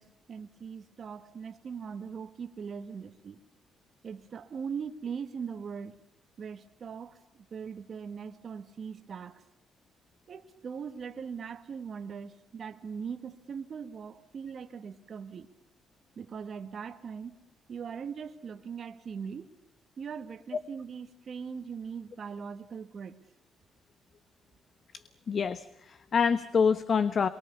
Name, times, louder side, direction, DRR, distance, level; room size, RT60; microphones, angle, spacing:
voice 1, 0.0-3.4 4.0-6.0 6.4-7.2 7.5-9.4 10.3-15.5 16.2-17.4 17.7-19.5 20.0-23.2, right 6 dB, 50° right, 1.8 m, -40 dB
voice 2, 25.3-27.3, left 6 dB, 50° left, 1.2 m, -26 dB
28.0 x 23.0 x 7.0 m
cardioid pair, 90°, 0 cm